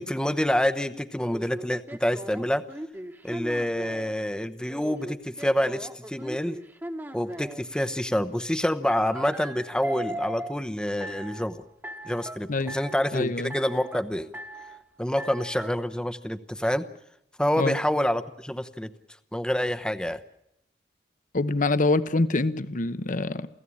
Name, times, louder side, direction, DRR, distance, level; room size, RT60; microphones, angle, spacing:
voice 1, 0.0-2.6 3.2-6.6 7.1-11.6 12.0-14.3 15.0-16.9 17.4-18.9 19.3-20.2, equal, 5° left, 12 dB, 0.9 m, -27 dB
sound 1, 1.2-4.1 4.7-7.6 8.9-10.5 11.0-11.5 11.8-12.4 12.7-13.1 13.5-14.0 14.3-14.8 15.2-15.7, right 1 dB, 10° right, 1.3 m, -38 dB
voice 2, 13.1-13.6 17.6-17.8 21.3-23.5, left 2 dB, 50° left, 14 dB, 0.9 m, -25 dB
28.5 x 16.0 x 8.7 m, 0.77 s
head